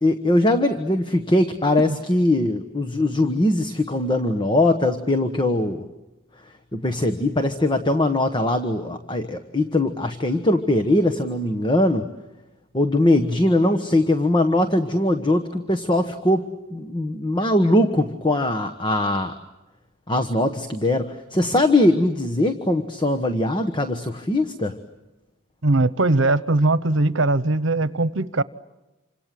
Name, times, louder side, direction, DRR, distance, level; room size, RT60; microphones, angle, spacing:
voice 1, 0.0-5.8 6.7-12.1 12.7-19.3 20.1-24.7, left 1 dB, 25° left, 8 dB, 1.2 m, -21 dB
voice 2, 25.6-28.4, right 2 dB, 75° right, 15 dB, 1.1 m, -20 dB
28.5 x 26.5 x 7.7 m, 1.0 s
head